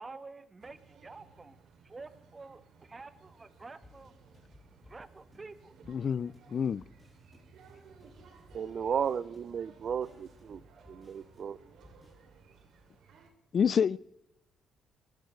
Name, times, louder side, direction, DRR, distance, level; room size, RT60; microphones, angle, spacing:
voice 1, 0.0-4.1 4.7-5.9, right 3 dB, 25° right, 1.3 m, -49 dB
sound 1, 0.6-13.3, right 5 dB, 70° right, 2.8 m, -59 dB
sound 2, 3.3-12.1, left 2 dB, 5° left, 7.3 m, -61 dB
voice 2, 5.9-6.8 13.5-14.0, left 7 dB, 50° left, 0.4 m, -28 dB
sound 3, 8.0-13.0, equal, 30° left, 5.0 m, -67 dB
voice 3, 8.5-10.6 10.9-11.6, right 7 dB, 55° right, 0.6 m, -34 dB
22.5 x 14.5 x 3.3 m
cardioid pair, 90°, 0 cm